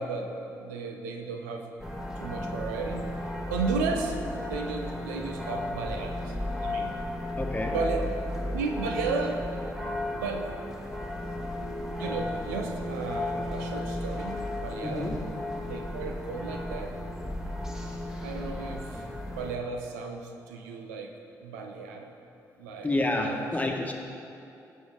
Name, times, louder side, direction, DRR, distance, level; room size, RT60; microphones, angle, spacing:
voice 1, 0.0-1.7 2.2-3.1 3.5-4.2 4.4-6.3 6.6-7.0 7.6-8.2 8.5-9.6 10.1-10.5 11.3-15.1 15.6-17.0 18.2-21.1 21.4-22.1 22.6-22.9 23.2-23.5, right 4 dB, 90° right, 3 dB, 0.6 m, -34 dB
sound 1, 1.8-19.6, left 1 dB, 5° right, 1.6 m, -34 dB
voice 2, 7.4-7.7 14.8-15.2 22.8-23.9, left 2 dB, 15° left, 1 dB, 1.4 m, -29 dB
15.0 x 5.6 x 3.7 m, 2.7 s
hypercardioid pair, 40°, 9 cm